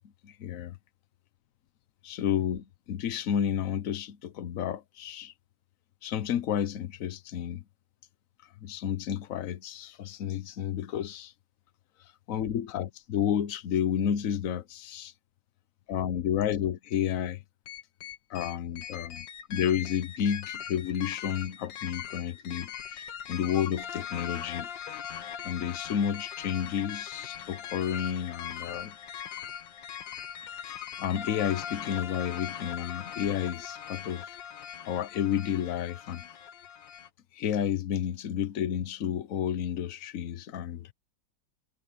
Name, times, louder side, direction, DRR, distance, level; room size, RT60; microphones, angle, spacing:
voice 1, 0.2-0.8 2.0-5.3 6.0-7.6 8.6-11.3 12.3-15.1 15.9-17.4 18.3-19.1 19.5-24.7 25.4-28.9 30.6-34.4 34.9-36.3 37.3-40.9, left 9 dB, 55° left, 1.1 m, -31 dB
sound 1, 17.7-37.1, left 8 dB, 85° left, 2.0 m, -40 dB
omnidirectional pair, 1.9 m